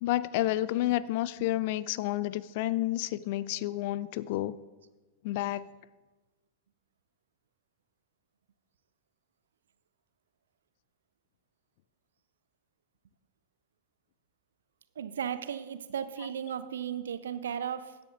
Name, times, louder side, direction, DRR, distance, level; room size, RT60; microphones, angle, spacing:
voice 1, 0.0-4.6 5.2-5.7, left 15 dB, 50° left, 0.3 m, -30 dB
voice 2, 15.0-18.0, right 8 dB, 65° right, 0.5 m, -35 dB
16.0 x 10.5 x 2.5 m
figure-of-eight pair, 90°, 0 cm